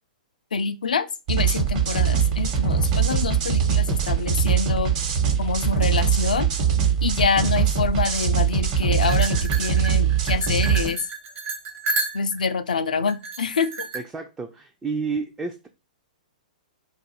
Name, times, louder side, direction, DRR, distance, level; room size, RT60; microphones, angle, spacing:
voice 1, 0.5-5.0 5.4-6.5 7.0-11.0 12.1-13.9, left 5 dB, 80° left, 0.4 m, -26 dB
sound 1, 1.3-10.9, right 7 dB, 50° right, 1.1 m, -22 dB
voice 2, 1.7-2.1 3.9-4.0 13.9-15.7, right 4 dB, 10° right, 0.3 m, -31 dB
sound 2, 9.0-12.5 13.1-14.0, right 3 dB, 35° right, 0.7 m, -31 dB
2.5 x 2.4 x 4.1 m
hypercardioid pair, 120°, 4 cm